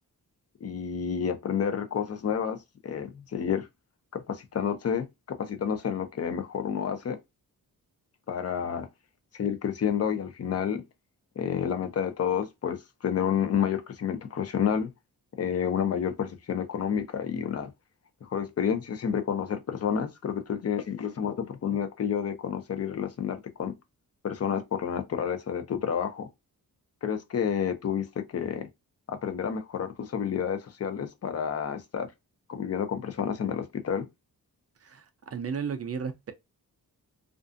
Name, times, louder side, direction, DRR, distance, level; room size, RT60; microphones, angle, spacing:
voice 1, 0.6-2.6 2.8-3.7 4.1-5.0 5.4-7.2 8.3-8.9 9.3-10.8 11.4-14.9 15.4-17.7 18.2-23.7 24.2-26.3 27.0-28.7 29.1-32.1 32.5-34.1, left 7 dB, 40° left, 0.5 m, -30 dB
voice 2, 34.8-36.3, right 6 dB, 40° right, 0.4 m, -34 dB
2.5 x 2.3 x 2.4 m
wide cardioid pair, 125°, 37 cm